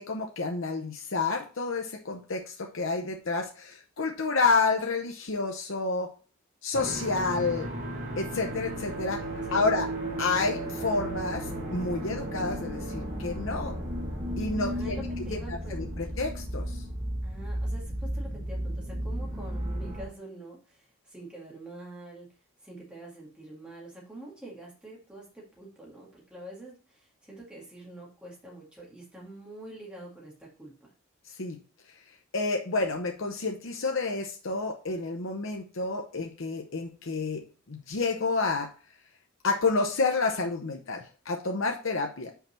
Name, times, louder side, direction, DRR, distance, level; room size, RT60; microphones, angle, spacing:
voice 1, 0.0-6.1 6.6-7.7 8.2-9.2 9.5-9.9 10.2-13.8 14.4-15.0 15.3-15.4 15.7-16.8 31.4-31.6 32.3-37.4 37.7-38.7 39.4-42.3, left 3 dB, 60° left, 2 dB, 0.8 m, -29 dB
sound 1, 6.7-20.0, right 1 dB, 35° right, 1.6 m, -34 dB
voice 2, 14.7-16.1 17.2-22.3 22.6-30.9, right 1 dB, 5° right, -4 dB, 1.9 m, -45 dB
5.7 x 4.4 x 5.6 m, 0.37 s
head